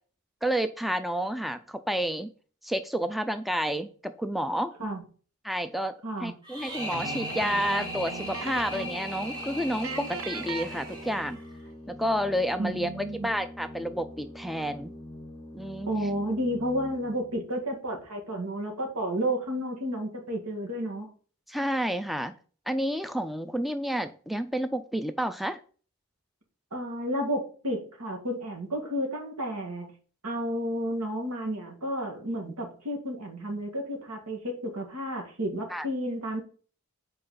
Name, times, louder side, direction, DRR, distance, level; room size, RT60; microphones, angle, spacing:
voice 1, 0.4-2.3 2.6-4.7 5.4-11.4 11.9-14.9 15.5-15.9 21.5-22.3 22.7-25.6 32.4-32.5 35.7-35.9, equal, ahead, 10 dB, 0.3 m, -30 dB
voice 2, 6.0-6.3 12.6-13.3 15.9-21.1 23.6-23.7 26.7-29.9 30.2-36.4, equal, 90° right, 2 dB, 2.0 m, -31 dB
sound 1, 6.4-11.6, equal, 20° right, 2.8 m, -38 dB
Organ, 6.7-17.4, left 1 dB, 15° left, 0.7 m, -44 dB
sound 2, 6.9-9.1 9.3-9.5 9.8-11.5, right 5 dB, 65° right, 0.7 m, -39 dB
5.5 x 4.6 x 5.6 m, 0.40 s
head